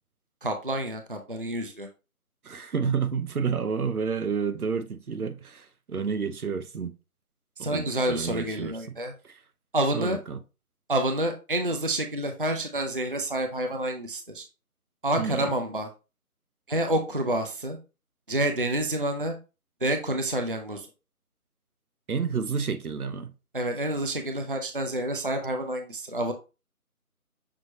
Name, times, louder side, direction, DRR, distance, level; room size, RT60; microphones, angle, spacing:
voice 1, 0.4-1.9 7.6-9.1 9.7-10.2 10.9-14.5 15.0-15.9 16.7-17.8 18.3-19.3 19.8-20.9 23.5-26.3, right 1 dB, 40° right, 0.4 m, -28 dB
voice 2, 2.5-6.9 7.6-9.0 9.2-9.3 9.9-10.4 15.2-15.5 22.1-23.3, right 6 dB, 80° right, 0.7 m, -30 dB
6.2 x 3.0 x 2.8 m
figure-of-eight pair, 160°, 44 cm